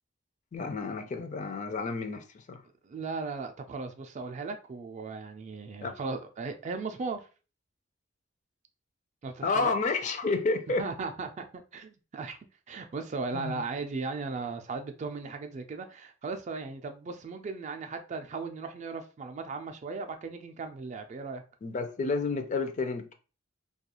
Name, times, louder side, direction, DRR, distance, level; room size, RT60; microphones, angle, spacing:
voice 1, 0.5-2.6 5.8-5.9 9.4-10.9 13.3-13.6 21.6-23.1, left 4 dB, 40° left, 0.4 m, -30 dB
voice 2, 2.8-7.3 9.2-9.7 10.8-12.4 12.7-21.4, right 4 dB, 40° right, 0.3 m, -37 dB
2.3 x 2.3 x 2.8 m
head